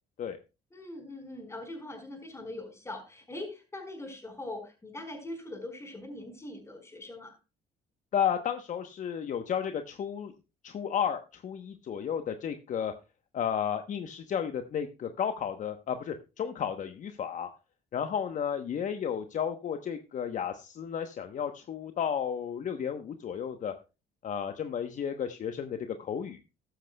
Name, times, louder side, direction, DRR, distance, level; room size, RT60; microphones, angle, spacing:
voice 1, 0.7-7.3, left 2 dB, 15° left, 5 dB, 4.8 m, -42 dB
voice 2, 8.1-10.3 10.6-12.9 13.3-17.5 17.9-23.7 24.2-26.4, left 8 dB, 50° left, 7 dB, 1.0 m, -33 dB
14.0 x 11.5 x 2.2 m, 0.29 s
cardioid pair, 110°, 17 cm